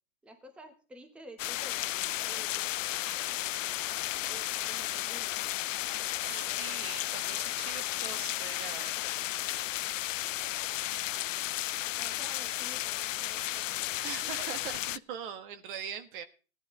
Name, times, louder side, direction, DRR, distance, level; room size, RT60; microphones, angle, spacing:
voice 1, 0.2-2.7 3.0-3.9 4.3-5.4 6.1-6.8 11.1-11.5 11.8-14.4, right 1 dB, 5° right, 1.0 m, -52 dB
sound 1, 1.4-15.0, left 14 dB, 65° left, 0.5 m, -33 dB
voice 2, 6.2-8.9 14.0-16.2, right 8 dB, 40° right, 1.2 m, -42 dB
15.5 x 10.5 x 3.6 m
hypercardioid pair, 145°, 41 cm